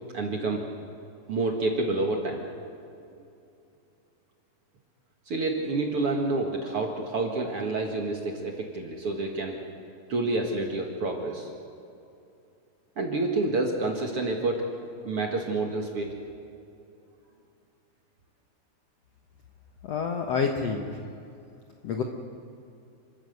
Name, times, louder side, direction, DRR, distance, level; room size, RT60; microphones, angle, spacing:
voice 1, 0.1-0.7 1.3-2.5 5.3-9.6 10.1-11.5 13.0-16.1, right 2 dB, 50° right, 1 dB, 1.9 m, -28 dB
voice 2, 19.8-21.0 21.8-22.0, left 5 dB, 65° left, 3 dB, 1.6 m, -28 dB
29.0 x 13.5 x 8.0 m, 2.7 s
omnidirectional pair, 4.4 m